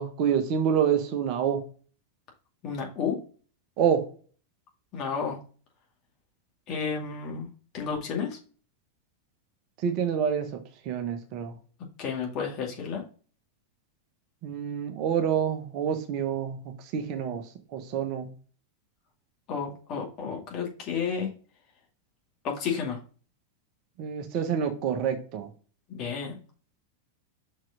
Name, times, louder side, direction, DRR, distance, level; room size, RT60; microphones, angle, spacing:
voice 1, 0.0-1.6 3.8-4.1 9.8-11.5 14.4-18.3 24.0-25.5, right 8 dB, 40° right, 7 dB, 1.1 m, -27 dB
voice 2, 2.6-3.2 4.9-5.4 6.7-7.5 7.7-8.4 12.0-13.0 19.5-21.3 22.4-23.0 25.9-26.4, left 6 dB, 35° left, 0 dB, 2.3 m, -31 dB
6.0 x 4.8 x 4.0 m, 0.39 s
figure-of-eight pair, 90°, 0 cm